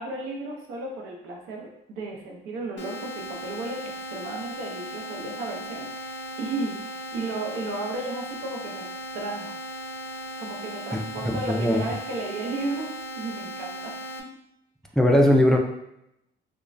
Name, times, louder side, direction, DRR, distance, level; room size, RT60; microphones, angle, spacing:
voice 1, 0.0-8.9 9.1-9.6 10.4-14.0, right 2 dB, 90° right, 0 dB, 0.6 m, -34 dB
sound 1, 2.8-14.2, equal, 65° left, 0.5 m, -37 dB
voice 2, 10.9-11.8 15.0-15.6, equal, 5° left, 2 dB, 0.3 m, -20 dB
3.0 x 2.2 x 2.5 m, 0.82 s
cardioid pair, 90°, 20 cm